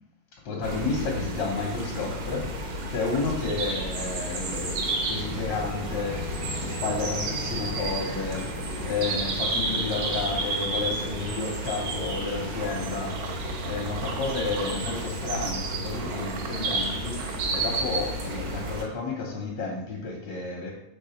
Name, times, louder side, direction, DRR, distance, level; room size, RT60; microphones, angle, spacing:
voice 1, 0.4-6.3 6.6-8.5 8.8-20.7, left 4 dB, 80° left, -1 dB, 1.5 m, -31 dB
sound 1, 0.6-18.8, right 2 dB, 70° right, 1.6 m, -31 dB
Singing / Musical instrument, 3.9-13.0, left 1 dB, 60° left, 0.6 m, -43 dB
sound 2, 12.5-17.8, right 8 dB, 85° right, 2.6 m, -41 dB
5.9 x 3.5 x 5.6 m, 0.83 s
omnidirectional pair, 4.4 m